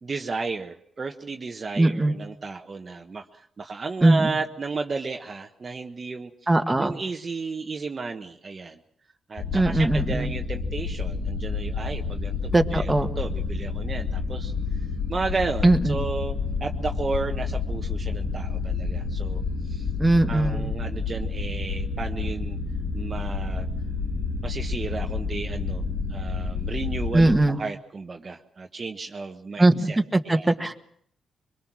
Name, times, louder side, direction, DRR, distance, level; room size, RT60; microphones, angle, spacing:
voice 1, 0.0-6.3 6.8-8.8 9.3-14.5 15.1-16.3 16.6-19.9 20.3-22.6 22.9-23.7 24.4-25.8 26.1-30.0 30.2-30.5, right 4 dB, 40° right, 4 dB, 1.2 m, -33 dB
voice 2, 1.8-2.1 4.0-4.3 6.5-6.9 9.5-10.3 12.5-13.1 15.6-16.1 20.0-20.7 27.1-27.6 29.6-30.7, right 2 dB, 15° right, 5 dB, 1.6 m, -20 dB
sound 1, 9.4-27.4, left 4 dB, 80° left, 6.4 m, -29 dB
23.5 x 22.5 x 6.2 m, 0.65 s
cardioid pair, 90°, 0 cm